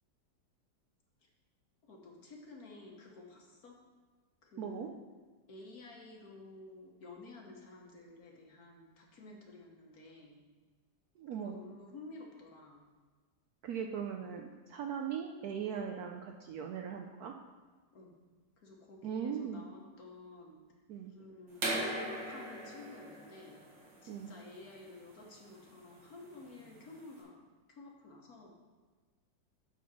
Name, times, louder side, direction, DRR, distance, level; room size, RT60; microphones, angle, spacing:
voice 1, 1.9-3.8 4.4-5.0 5.5-10.4 11.3-12.8 17.9-18.1 18.6-20.6 21.1-21.7 21.9-23.6 24.0-27.4 27.7-28.5, left 3 dB, 60° left, 0 dB, 1.5 m, -52 dB
voice 2, 4.6-4.9 11.2-11.5 13.6-17.3 19.0-19.6 20.9-21.1 24.1-24.3, right 7 dB, 70° right, 3 dB, 0.9 m, -39 dB
sound 1, 21.5-27.1, right 1 dB, 85° right, 2.4 m, -40 dB
8.3 x 4.0 x 6.1 m, 1.4 s
omnidirectional pair, 1.9 m